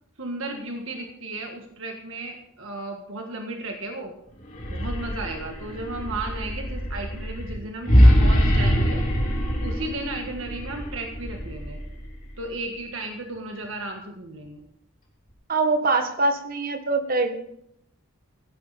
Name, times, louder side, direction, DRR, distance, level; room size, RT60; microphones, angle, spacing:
voice 1, 0.2-4.1 4.7-9.0 9.6-11.8 12.4-14.6, right 2 dB, 65° right, 2 dB, 1.7 m, -34 dB
sound 1, 4.4-12.6, equal, 40° left, 3.4 m, -23 dB
voice 2, 15.5-17.3, right 3 dB, 45° right, 6 dB, 1.5 m, -23 dB
16.0 x 11.0 x 4.2 m, 0.73 s
head